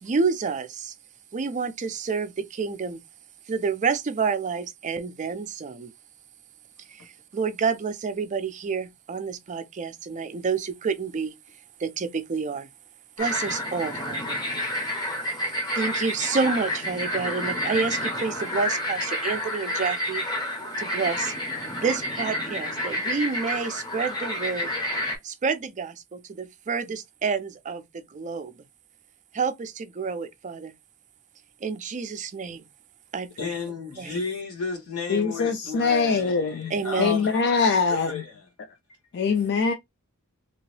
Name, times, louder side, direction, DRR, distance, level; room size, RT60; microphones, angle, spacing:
voice 1, 0.0-0.9 1.3-3.0 3.5-5.9 6.9-11.3 11.8-12.7 13.2-14.4 15.7-20.2 20.8-21.3 21.7-24.7 25.2-28.5 29.3-30.7 31.6-32.6 33.1-33.5 34.0-34.2 36.7-37.2, right 5 dB, 35° right, 0.4 m, -29 dB
sound 1, 13.2-25.2, left 1 dB, 20° left, 0.9 m, -29 dB
voice 2, 33.4-37.5 37.9-38.5, left 4 dB, 80° left, 1.4 m, -33 dB
voice 3, 35.1-36.7 37.0-38.2 39.1-39.7, left 5 dB, 50° left, 0.4 m, -23 dB
2.9 x 2.7 x 3.1 m
head